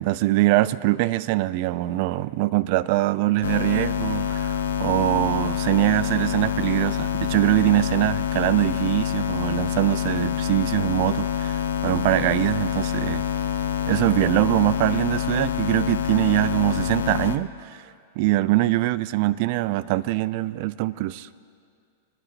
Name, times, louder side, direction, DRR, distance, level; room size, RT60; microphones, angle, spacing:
voice 1, 0.0-13.3 13.9-17.8 18.2-21.3, right 17 dB, 55° right, 18 dB, 0.5 m, -23 dB
sound 1, 3.4-17.4, left 8 dB, 80° left, 0.8 m, -26 dB
26.0 x 9.9 x 4.4 m, 2.4 s
hypercardioid pair, 100°, 0 cm